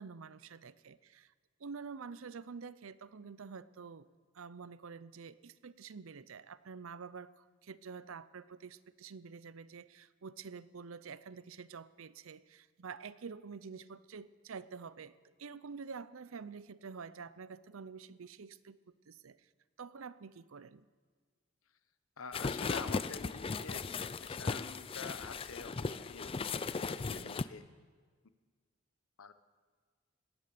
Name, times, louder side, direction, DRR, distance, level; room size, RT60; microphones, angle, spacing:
voice 1, 0.0-1.3 1.6-4.1 4.3-18.8 19.1-19.5 19.8-20.9 27.1-27.4, right 5 dB, 75° right, 17 dB, 0.6 m, -48 dB
voice 2, 22.2-23.8 24.2-27.6 29.2-29.3, left 5 dB, 90° left, 12 dB, 0.9 m, -47 dB
sound 1, 22.3-27.4, left 4 dB, 25° left, 0.4 m, -37 dB
17.5 x 11.5 x 6.9 m, 1.5 s
head